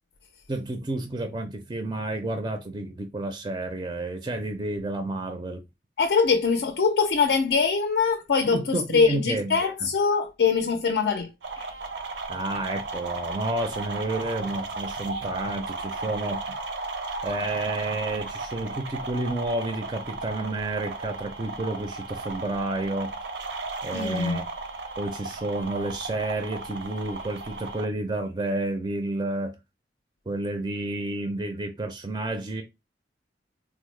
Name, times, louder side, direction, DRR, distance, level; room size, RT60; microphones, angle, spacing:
voice 1, 0.5-5.6 8.5-9.9 12.3-16.6 17.2-23.1 23.8-24.4 25.0-29.5 30.3-32.6, right 2 dB, 25° right, 0.4 m, -30 dB
voice 2, 6.0-11.3 23.9-24.4, left 5 dB, 75° left, 0.4 m, -23 dB
sound 1, 11.4-27.8, right 3 dB, 85° right, 0.6 m, -35 dB
3.6 x 2.0 x 3.1 m
head